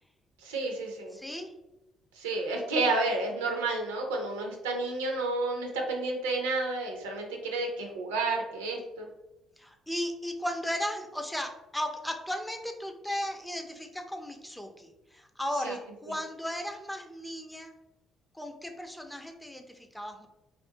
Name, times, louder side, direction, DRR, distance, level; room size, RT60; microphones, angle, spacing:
voice 1, 0.4-1.2 2.2-9.1 15.6-15.8, right 2 dB, 80° right, 2 dB, 0.4 m, -31 dB
voice 2, 1.1-1.5 9.6-17.7 18.3-20.3, left 1 dB, 5° left, 4 dB, 0.4 m, -36 dB
2.4 x 2.0 x 2.7 m, 0.98 s
hypercardioid pair, 50°, 0 cm